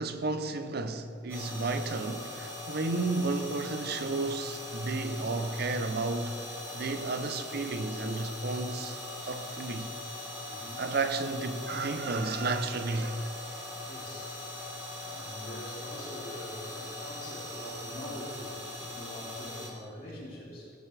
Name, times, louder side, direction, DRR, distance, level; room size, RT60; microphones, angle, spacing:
voice 1, 0.0-6.4 6.7-9.0 9.2-9.9 10.8-13.4, right 3 dB, 60° right, 0.7 m, -32 dB
sound 1, 1.3-19.7, left 1 dB, 15° right, 2.1 m, -41 dB
sound 2, 1.9-12.0, left 6 dB, 35° left, 1.6 m, -56 dB
voice 2, 10.4-10.8 13.8-14.4 15.0-18.6 18.9-20.7, left 1 dB, 55° left, 3.1 m, -44 dB
16.5 x 9.0 x 3.4 m
head